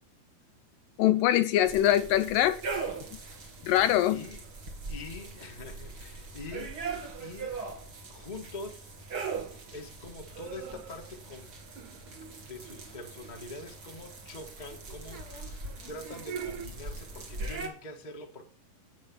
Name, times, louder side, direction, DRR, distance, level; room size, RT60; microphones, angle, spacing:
voice 1, 1.0-2.6 3.6-4.2, left 12 dB, 80° left, 2.1 m, -23 dB
sound 1, 1.6-17.7, right 4 dB, 35° right, 2.3 m, -41 dB
voice 2, 4.1-4.4 4.9-6.8 7.1-7.6 8.1-8.9 9.7-11.6 12.3-18.4, left 2 dB, 45° left, 0.5 m, -44 dB
Pain Schwester, 4.4-4.7 6.9-7.5 10.1-13.7 15.5-16.7, right 8 dB, 75° right, 1.8 m, -45 dB
8.5 x 8.0 x 5.5 m
omnidirectional pair, 4.3 m